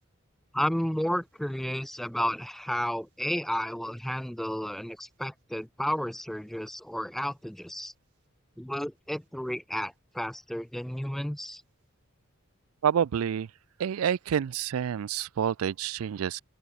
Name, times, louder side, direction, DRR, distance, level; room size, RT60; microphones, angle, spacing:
voice 1, 0.5-7.9 8.6-11.6, equal, ahead, 0.3 m, -32 dB
voice 2, 12.8-13.5 13.8-16.4, right 8 dB, 80° right, 0.4 m, -28 dB
open air
head